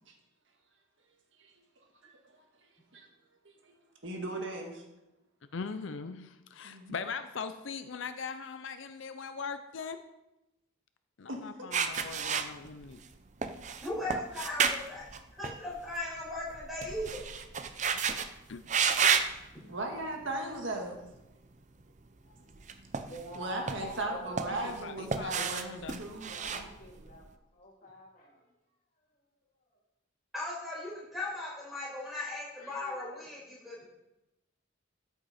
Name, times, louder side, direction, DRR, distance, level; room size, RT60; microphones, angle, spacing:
voice 1, 4.0-4.8 6.6-7.0 11.3-11.7 19.7-21.1 23.4-26.7, right 2 dB, 65° right, 2 dB, 1.8 m, -37 dB
voice 2, 5.5-10.0 11.2-13.0 18.5-18.6 24.5-26.0, left 5 dB, 65° left, 10 dB, 0.5 m, -40 dB
sound 1, 11.7-13.1 13.4-16.0 16.3-18.3 18.7-19.3 20.0-20.2 22.5-23.4 23.7-24.8 25.1-27.2, right 6 dB, 35° right, 0.6 m, -31 dB
voice 3, 13.8-15.0 15.4-17.2 30.3-33.8, left 2 dB, ahead, -6 dB, 4.7 m, -38 dB
voice 4, 23.0-24.5 26.2-27.3 27.5-28.5 32.6-33.2, equal, 40° left, -2 dB, 2.6 m, -47 dB
13.5 x 8.1 x 4.2 m, 0.95 s
head